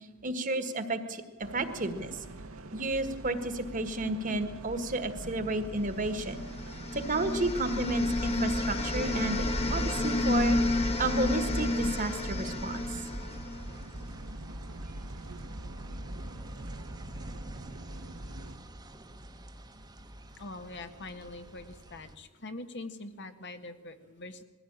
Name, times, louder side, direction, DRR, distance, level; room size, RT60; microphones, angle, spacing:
voice 1, 0.2-2.2 2.7-6.4 6.9-13.1, right 2 dB, 40° right, 9 dB, 1.6 m, -32 dB
sound 1, 1.4-18.6, right 1 dB, 75° right, 1.5 m, -44 dB
sound 2, 6.0-22.2, right 1 dB, 20° right, 1.2 m, -48 dB
sound 3, 6.1-14.1, left 2 dB, 30° left, 1.4 m, -30 dB
voice 2, 20.4-24.4, left 2 dB, 55° left, 7 dB, 1.5 m, -43 dB
21.0 x 15.5 x 8.8 m, 1.1 s
head